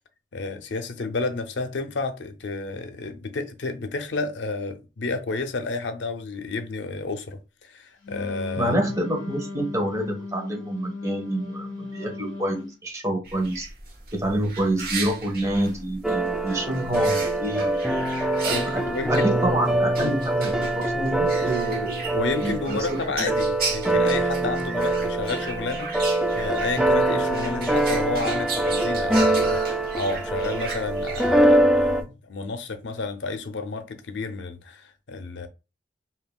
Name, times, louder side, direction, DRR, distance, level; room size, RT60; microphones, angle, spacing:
voice 1, 0.3-8.7 18.5-19.4 20.0-20.1 22.1-25.9 26.3-35.5, left 3 dB, 80° left, 0.6 m, -31 dB
Wind instrument woodwind instrument, 8.0-12.8, left 3 dB, 50° left, 1.2 m, -36 dB
voice 2, 8.6-13.7 14.1-17.8 18.4-18.8 19.1-23.3, right 1 dB, 20° right, 1.1 m, -27 dB
sound 1, 13.2-32.0, right 4 dB, 55° right, 1.1 m, -36 dB
sound 2, 16.0-32.0, right 1 dB, ahead, 0.3 m, -24 dB
5.3 x 2.7 x 2.3 m
head